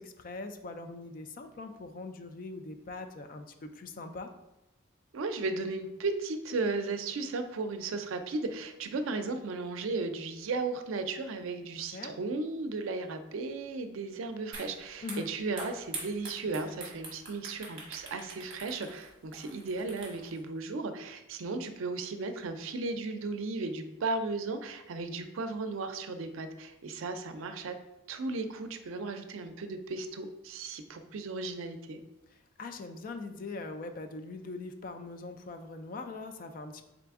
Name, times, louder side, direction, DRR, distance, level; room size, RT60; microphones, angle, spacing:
voice 1, 0.0-4.3 11.6-12.2 15.0-15.3 32.3-36.8, left 3 dB, 45° left, 7 dB, 0.3 m, -42 dB
voice 2, 5.1-27.8 28.1-32.0, right 3 dB, 80° right, 8 dB, 0.4 m, -35 dB
sound 1, 14.5-14.7 15.0-20.4, right 3 dB, 25° right, 1.1 m, -44 dB
3.8 x 3.4 x 3.5 m, 1.0 s
head